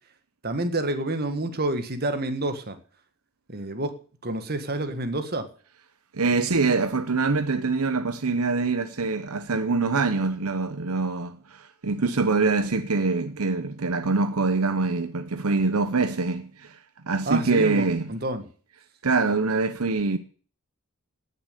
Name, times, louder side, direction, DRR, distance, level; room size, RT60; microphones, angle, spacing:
voice 1, 0.4-2.8 3.5-4.0 4.2-5.5 17.3-18.5, right 2 dB, 45° right, 1.6 m, -28 dB
voice 2, 6.1-16.8 17.0-18.1 19.0-20.2, right 3 dB, 80° right, 0.9 m, -24 dB
17.5 x 7.0 x 6.8 m
head